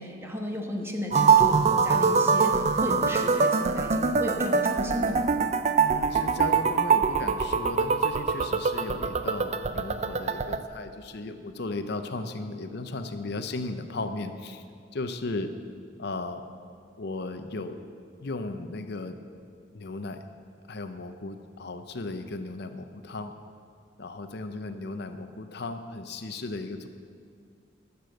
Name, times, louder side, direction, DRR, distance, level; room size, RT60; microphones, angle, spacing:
voice 1, 0.0-5.3, equal, 15° right, 1 dB, 1.2 m, -34 dB
sound 1, 1.1-10.6, right 5 dB, 40° right, 0.5 m, -24 dB
voice 2, 5.8-14.6 14.9-15.5 16.0-16.4 17.0-17.8 18.2-19.2 19.7-20.2 20.7-23.3 24.0-26.9, left 3 dB, 60° left, 8 dB, 0.7 m, -36 dB
12.5 x 6.9 x 7.8 m, 2.3 s
head